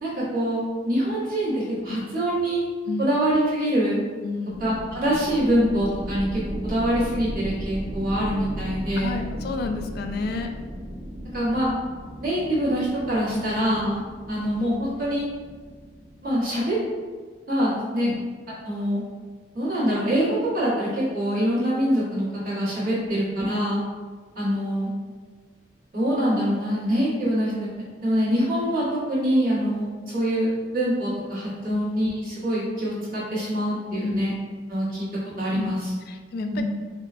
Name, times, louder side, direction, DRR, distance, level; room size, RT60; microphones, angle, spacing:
voice 1, 0.0-2.6 3.0-4.0 4.6-9.2 11.3-11.7 12.2-14.0 14.3-15.3 16.2-16.8 17.5-18.1 18.6-19.0 19.5-23.8 24.3-24.9 25.9-27.7 28.0-34.3 34.7-35.1 35.4-35.9 36.5-36.6, equal, 55° right, -9 dB, 1.5 m, -24 dB
voice 2, 4.2-4.6 9.0-10.5 13.3-13.4 18.0-18.2 23.0-23.1 31.7-31.8 34.0-34.2 35.5-35.7 36.1-36.6, left 3 dB, 55° left, 5 dB, 0.3 m, -30 dB
sound 1, 4.5-16.8, equal, 35° right, 0.5 m, -36 dB
5.0 x 2.2 x 2.5 m, 1.5 s
head